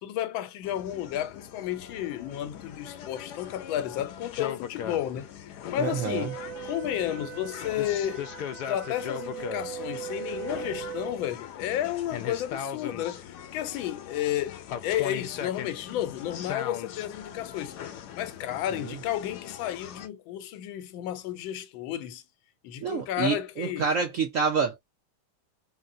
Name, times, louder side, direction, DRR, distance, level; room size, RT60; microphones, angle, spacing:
voice 1, 0.0-6.3 6.6-8.3 8.6-17.8 18.2-22.2 22.6-23.9, left 11 dB, 85° left, 1.4 m, -32 dB
sound 1, 0.6-20.1, left 9 dB, 70° left, 1.0 m, -40 dB
voice 2, 5.8-6.3 18.9-19.0 22.8-25.0, right 5 dB, 70° right, 0.7 m, -28 dB
Wind instrument woodwind instrument, 5.8-11.2, right 11 dB, 85° right, 1.4 m, -40 dB
4.0 x 2.1 x 2.4 m
omnidirectional pair, 2.1 m